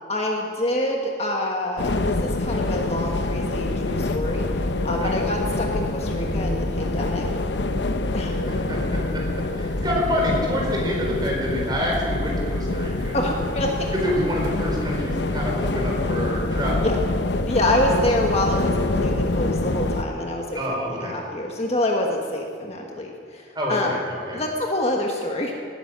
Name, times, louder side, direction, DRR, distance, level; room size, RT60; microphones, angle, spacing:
voice 1, 0.1-4.4 4.8-7.3 8.1-8.3 13.1-13.9 16.8-17.0 17.5-20.6 20.9-23.9 24.3-25.5, left 1 dB, 35° left, 0 dB, 1.5 m, -26 dB
sound 1, 1.8-20.0, left 2 dB, 75° left, 0.8 m, -25 dB
voice 2, 8.2-13.1 13.9-16.9 20.5-21.1 23.5-24.4, equal, 25° right, -2 dB, 4.6 m, -27 dB
19.0 x 10.0 x 7.6 m, 2.3 s
head